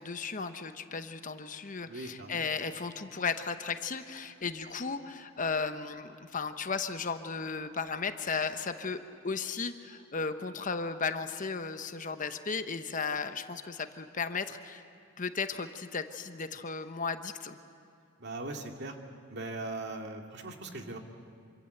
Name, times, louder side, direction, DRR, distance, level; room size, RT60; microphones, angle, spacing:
voice 1, 0.0-14.8 15.2-17.6, left 5 dB, 40° left, 9 dB, 1.0 m, -35 dB
voice 2, 1.9-2.4 18.2-19.0 19.3-21.0, right 2 dB, 55° right, 3 dB, 2.3 m, -39 dB
26.5 x 25.0 x 8.0 m, 2.5 s
head